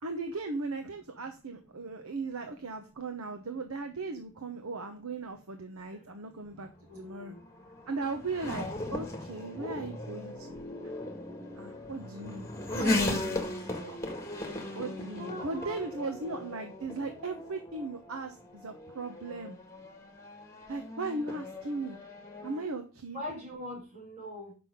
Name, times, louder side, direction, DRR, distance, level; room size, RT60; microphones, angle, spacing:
voice 1, 0.0-6.7 6.9-7.3 7.9-10.6 11.5-13.5 13.8-14.0 14.7-19.6 20.7-22.0 22.4-23.2, right 3 dB, 75° right, 1.0 m, -37 dB
Race car auto racing / Accelerating revving vroom, 6.4-22.7, left 2 dB, 15° left, 1.6 m, -37 dB
voice 2, 6.9-7.4 15.1-15.8 23.1-24.5, left 1 dB, 30° right, 5.3 m, -41 dB
7.6 x 6.0 x 5.1 m
head